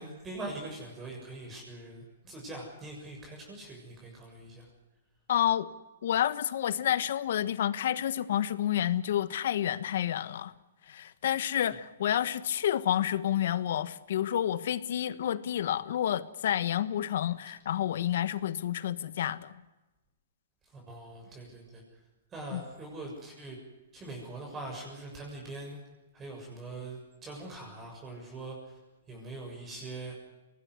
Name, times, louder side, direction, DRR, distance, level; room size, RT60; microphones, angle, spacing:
voice 1, 0.0-4.7 20.7-21.8 22.3-23.6 23.9-25.8 26.1-28.8 29.1-30.1, right 2 dB, 20° right, 0 dB, 7.0 m, -42 dB
voice 2, 5.3-5.7 6.0-10.5 10.9-19.6 22.5-22.6, left 11 dB, 65° left, 15 dB, 1.4 m, -29 dB
24.0 x 19.5 x 9.7 m, 1.1 s
hypercardioid pair, 140°, 0 cm